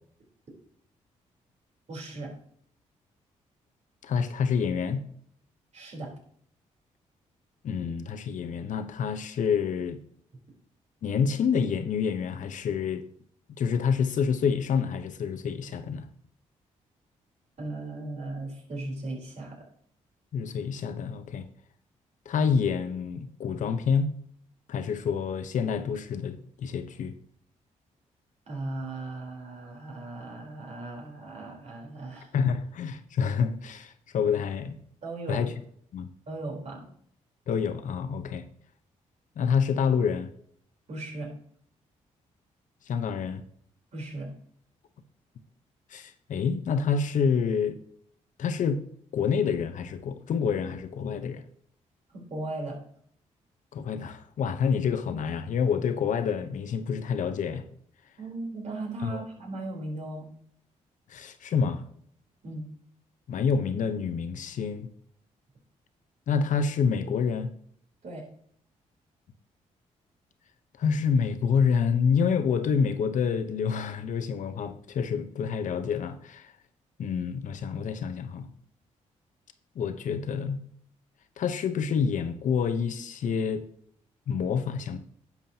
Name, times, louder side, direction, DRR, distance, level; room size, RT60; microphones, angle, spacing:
voice 1, 1.9-2.3 5.7-6.1 17.6-19.6 28.5-32.3 35.0-35.5 36.3-36.9 40.9-41.3 43.9-44.3 52.1-52.8 58.2-60.3 62.4-62.7 68.0-68.2, right 2 dB, 55° right, 3.8 m, -37 dB
voice 2, 4.0-5.0 7.6-10.0 11.0-13.0 13.6-16.1 20.3-21.5 22.3-24.1 24.7-27.1 32.3-34.8 35.3-35.5 35.9-36.1 37.5-38.4 39.4-40.3 42.9-43.4 45.9-47.8 48.4-48.8 49.1-51.4 53.7-57.6 59.0-59.2 61.1-61.8 63.3-64.9 66.3-67.5 70.8-76.5 77.0-78.5 79.8-80.6 81.4-83.7 84.3-85.0, left 6 dB, 70° left, 0.9 m, -27 dB
10.5 x 7.2 x 2.8 m
cardioid pair, 70°, 14 cm